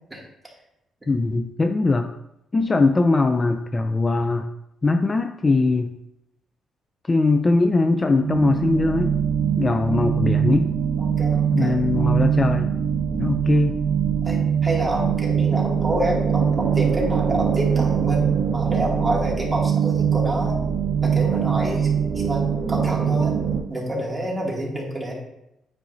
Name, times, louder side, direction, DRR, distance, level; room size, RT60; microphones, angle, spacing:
voice 1, 1.1-2.1 2.5-4.5 4.8-5.9 7.1-9.2 9.6-10.7 11.5-12.7 13.2-13.8, left 3 dB, 25° left, 7 dB, 0.4 m, -21 dB
sound 1, 8.2-23.6, right 7 dB, 65° right, 0.9 m, -22 dB
voice 2, 11.0-11.8 13.1-13.3 14.2-20.6 21.0-21.9 22.1-22.4 22.7-23.4 23.7-25.1, right 1 dB, 15° right, -4 dB, 2.4 m, -28 dB
9.3 x 5.2 x 2.7 m, 0.84 s
cardioid pair, 90°, 0 cm